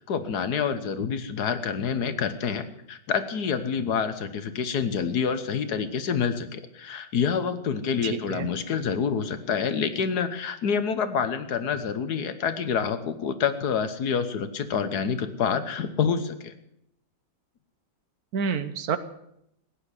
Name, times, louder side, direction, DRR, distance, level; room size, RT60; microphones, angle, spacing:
voice 1, 0.1-16.5, left 6 dB, 70° left, 11 dB, 1.6 m, -27 dB
voice 2, 8.0-8.5 18.3-19.0, right 6 dB, 65° right, 12 dB, 1.3 m, -28 dB
16.0 x 9.8 x 8.2 m, 0.76 s
omnidirectional pair, 1.8 m